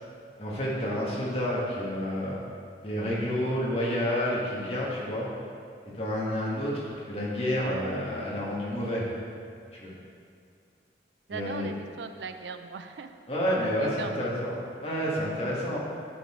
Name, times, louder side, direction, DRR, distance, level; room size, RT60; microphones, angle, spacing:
voice 1, 0.4-2.4 2.8-5.3 5.9-9.1 9.7-9.9 11.3-11.7 13.3-15.8, equal, 35° left, -5 dB, 1.5 m, -29 dB
voice 2, 11.3-13.1 13.8-14.3, right 5 dB, 85° right, 8 dB, 0.5 m, -38 dB
10.0 x 4.0 x 4.4 m, 2.4 s
head